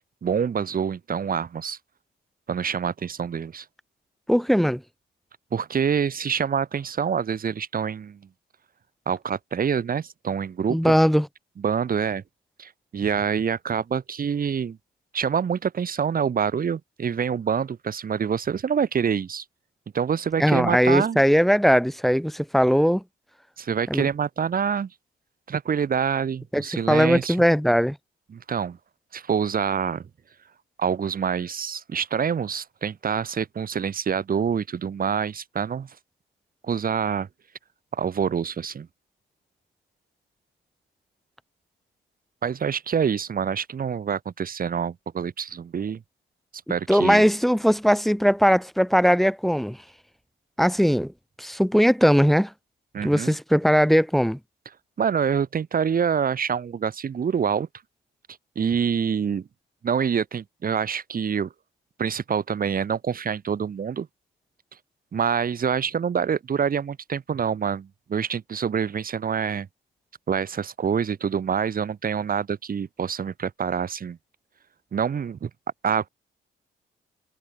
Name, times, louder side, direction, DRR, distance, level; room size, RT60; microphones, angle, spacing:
voice 1, 0.2-1.8 2.5-3.6 5.5-8.2 9.1-10.9 11.6-12.2 12.6-14.8 15.1-19.4 19.9-21.2 23.6-24.9 25.5-27.4 28.3-28.8 29.1-30.1 30.8-35.9 36.6-37.3 37.9-38.9 42.4-46.0 46.7-47.2 52.9-53.4 55.0-57.7 58.5-59.5 59.8-61.5 62.0-64.1 65.1-69.7 70.3-74.2 74.9-75.5 75.8-76.1, right 7 dB, 45° right, 3.0 m, -26 dB
voice 2, 4.3-4.8 10.7-11.3 20.4-23.0 23.9-24.0 26.5-28.0 46.9-49.8 50.6-51.1 51.4-52.5 53.0-54.4, equal, ahead, 0.9 m, -19 dB
cardioid pair, 90°, 20 cm